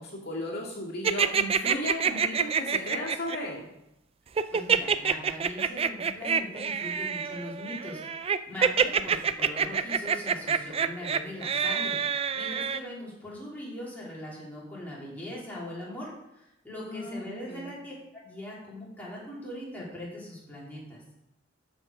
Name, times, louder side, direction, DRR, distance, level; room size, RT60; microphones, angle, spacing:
voice 1, 0.0-3.7 16.8-17.7, left 1 dB, 55° left, -4 dB, 2.0 m, -35 dB
sound 1, 1.0-3.4 4.4-12.8, right 6 dB, 30° right, 0.3 m, -26 dB
voice 2, 4.5-17.9 18.2-21.0, left 1 dB, 10° left, -6 dB, 3.1 m, -40 dB
13.0 x 5.2 x 5.1 m, 0.87 s
head